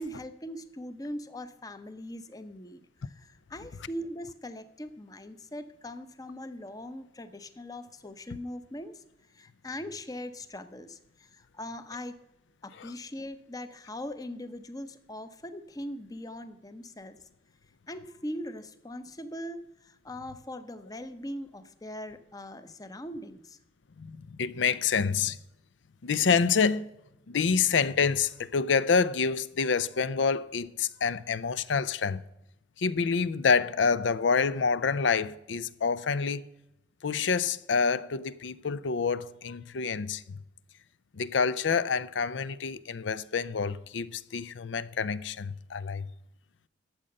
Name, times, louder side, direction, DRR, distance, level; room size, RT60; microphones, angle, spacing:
voice 1, 0.0-9.0 9.3-12.2 12.6-17.3 17.9-23.6, left 1 dB, 20° left, 0.7 m, -41 dB
voice 2, 24.0-25.4 26.0-26.9 27.3-32.2 32.8-36.5 37.0-40.4 41.1-46.1, left 5 dB, 80° left, 0.5 m, -27 dB
12.5 x 7.6 x 5.3 m
head